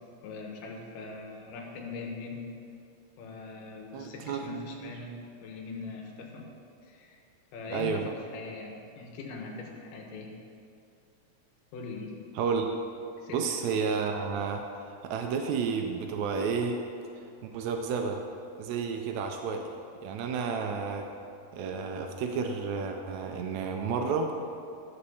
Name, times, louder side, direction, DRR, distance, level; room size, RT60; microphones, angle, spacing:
voice 1, 0.2-2.4 3.2-5.1 5.4-6.5 6.8-7.2 7.5-10.3 11.7-12.2 13.2-13.6, left 3 dB, 75° left, 0 dB, 2.6 m, -41 dB
voice 2, 3.9-4.9 7.7-8.1 12.4-12.7 13.3-14.6 15.0-16.8 17.4-18.2 18.6-19.7 20.0-21.1 21.5-24.3, right 5 dB, 85° right, 4 dB, 1.6 m, -31 dB
11.5 x 4.2 x 6.9 m, 2.6 s
omnidirectional pair, 3.9 m